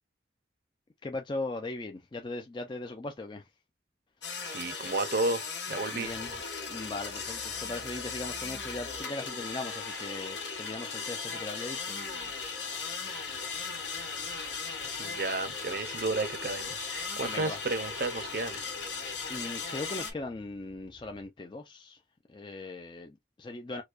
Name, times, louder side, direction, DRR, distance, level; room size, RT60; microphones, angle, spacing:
voice 1, 1.0-3.5 5.9-6.3 6.7-12.3 17.2-17.6 19.3-22.0 22.3-23.8, left 2 dB, 25° left, 0.4 m, -39 dB
sound 1, 4.2-20.1, left 5 dB, 90° left, 1.9 m, -37 dB
voice 2, 4.4-6.1 14.9-18.6, right 3 dB, 55° right, 0.6 m, -32 dB
sound 2, 6.0-21.3, left 1 dB, 55° left, 1.1 m, -56 dB
4.6 x 2.2 x 2.4 m
head